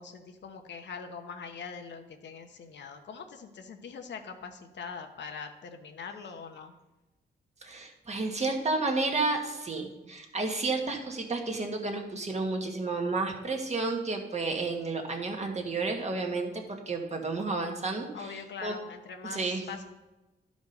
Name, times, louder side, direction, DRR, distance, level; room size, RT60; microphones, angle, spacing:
voice 1, 0.0-6.7 18.1-19.8, left 5 dB, 70° left, 6 dB, 1.0 m, -42 dB
voice 2, 7.6-18.8 19.2-19.7, right 3 dB, 35° right, 2 dB, 1.6 m, -31 dB
12.0 x 5.2 x 5.3 m, 1.0 s
cardioid pair, 90°, 19 cm